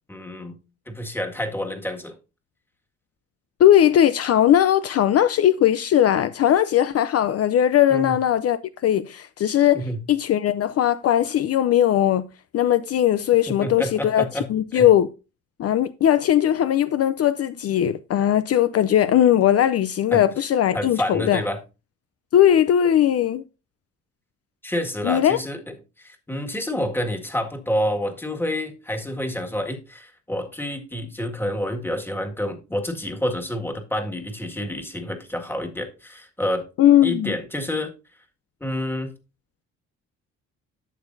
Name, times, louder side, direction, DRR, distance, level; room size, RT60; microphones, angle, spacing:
voice 1, 0.1-0.6 0.9-2.2 7.9-8.2 9.7-10.0 13.6-14.5 14.7-14.9 20.1-20.3 20.7-21.6 24.6-25.6 26.0-36.6 37.0-37.9 38.6-39.1, left 1 dB, 5° left, 1.8 m, -28 dB
voice 2, 3.6-12.2 12.5-14.2 14.5-15.1 15.6-21.4 22.3-23.4 25.0-25.4 36.8-37.3, left 11 dB, 55° left, 0.5 m, -19 dB
11.5 x 7.0 x 2.6 m
cardioid pair, 90°, 30 cm